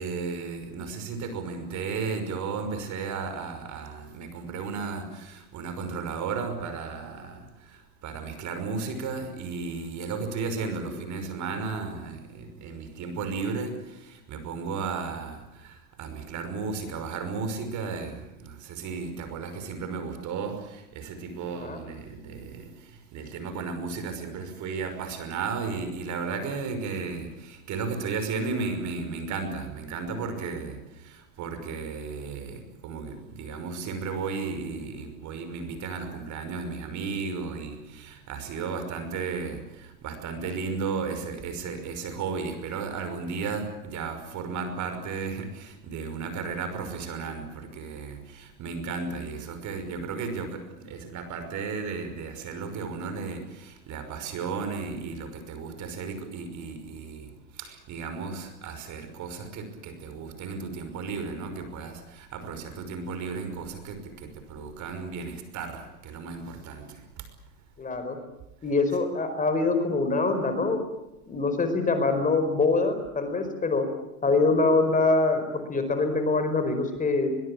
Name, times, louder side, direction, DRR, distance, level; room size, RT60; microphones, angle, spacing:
voice 1, 0.0-22.7 23.1-30.8 31.0-57.3 57.6-67.0, right 4 dB, 40° right, 5.8 m, -34 dB
voice 2, 10.6-11.0 21.5-21.8 67.8-68.2 68.6-70.8 71.3-73.8 74.2-77.3, left 3 dB, 20° left, 4.9 m, -24 dB
22.5 x 22.5 x 8.7 m
hypercardioid pair, 110°, 44 cm